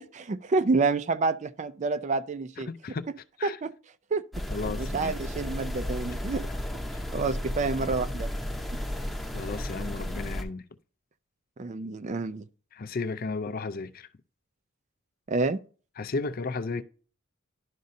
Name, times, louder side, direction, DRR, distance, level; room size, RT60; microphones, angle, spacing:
voice 1, 0.0-2.7 3.4-3.7 4.1-6.5 7.1-8.3 8.7-8.8 11.6-12.5 15.3-15.6, right 3 dB, 35° right, 0.4 m, -28 dB
voice 2, 2.7-3.1 3.4-3.6 4.5-5.1 6.9-7.0 9.3-10.6 12.7-14.1 16.0-16.8, left 3 dB, 45° left, 0.5 m, -34 dB
sound 1, 4.3-10.4, left 1 dB, ahead, 0.7 m, -33 dB
11.5 x 5.2 x 2.6 m
head